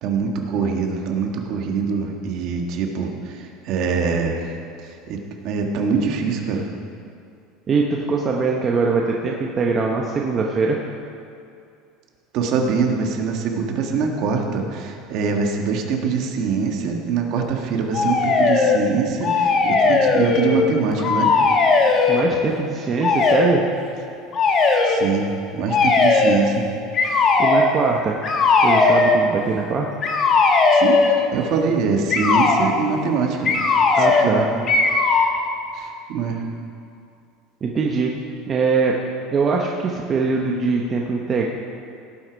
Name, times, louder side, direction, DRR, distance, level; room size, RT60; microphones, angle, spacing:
voice 1, 0.0-6.7 12.3-21.3 24.8-26.7 27.0-27.2 30.7-34.5 35.7-36.4, right 5 dB, 45° right, 2 dB, 1.5 m, -24 dB
voice 2, 7.7-10.8 21.8-23.6 27.4-28.2 28.6-29.9 34.0-34.5 37.6-38.1 38.5-39.0 39.3-41.5, right 4 dB, 25° right, 0 dB, 0.8 m, -22 dB
sound 1, 17.9-18.8 19.2-20.7 21.0-22.3 23.0-23.5 24.3-25.0 25.7-26.4 26.9-27.7 28.2-29.2 30.0-31.2 32.1-32.6 33.4-34.3 34.7-35.3, left 4 dB, 30° left, 1.2 m, -17 dB
17.0 x 7.9 x 5.1 m, 2.5 s
cardioid pair, 165°, 0 cm